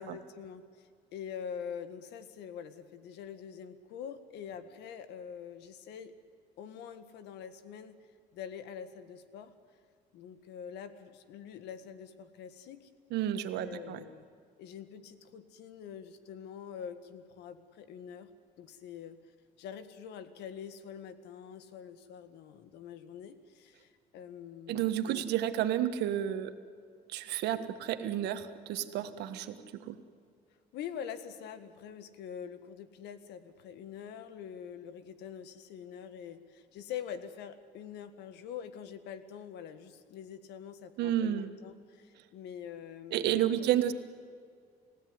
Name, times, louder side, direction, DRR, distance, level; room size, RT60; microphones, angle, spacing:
voice 1, 0.0-6.1 6.6-8.0 8.3-9.5 10.1-13.0 13.6-14.3 14.6-18.3 18.6-19.2 19.6-25.3 30.7-43.7, left 8 dB, 85° left, 11 dB, 1.8 m, -45 dB
voice 2, 13.1-14.0 24.7-26.5 27.1-30.0 41.0-41.5 43.1-43.9, right 11 dB, 80° right, 9 dB, 1.6 m, -31 dB
29.5 x 16.0 x 9.6 m, 2.2 s
cardioid pair, 110°, 17 cm